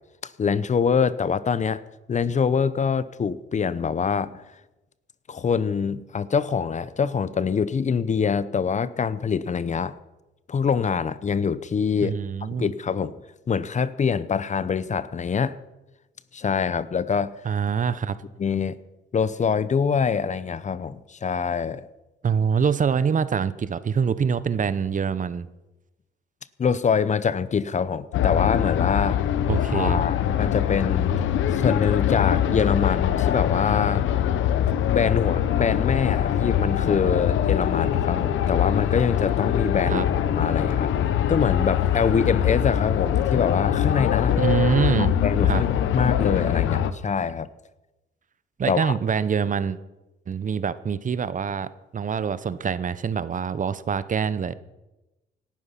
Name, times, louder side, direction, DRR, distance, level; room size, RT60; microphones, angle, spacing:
voice 1, 0.4-1.8 2.1-4.4 5.3-9.9 10.5-12.2 12.6-13.2 13.5-15.6 16.3-17.3 18.4-18.8 19.1-21.8 26.6-29.2 29.7-31.2 31.5-34.0 34.9-40.9 41.3-44.4 45.0-47.5 48.7-48.9, left 6 dB, 35° left, 16 dB, 0.8 m, -24 dB
voice 2, 12.0-12.7 17.4-18.2 22.2-25.5 29.5-30.0 39.9-40.1 44.4-45.1 45.4-45.6 48.6-49.8 50.3-54.5, right 6 dB, 40° right, 15 dB, 0.8 m, -25 dB
sound 1, 28.1-46.9, left 10 dB, 80° left, 0.9 m, -23 dB
18.0 x 12.0 x 5.8 m, 1.0 s
cardioid pair, 90°, 20 cm